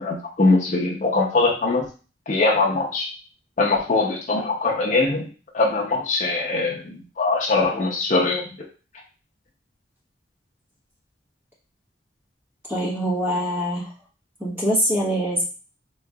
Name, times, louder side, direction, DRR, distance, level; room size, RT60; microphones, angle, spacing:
voice 1, 0.0-1.9 2.3-3.1 3.6-5.3 5.5-8.5, left 3 dB, 45° left, -3 dB, 0.7 m, -22 dB
voice 2, 12.7-13.9 14.4-15.4, equal, 10° right, -4 dB, 1.2 m, -23 dB
3.7 x 3.0 x 2.3 m, 0.35 s
head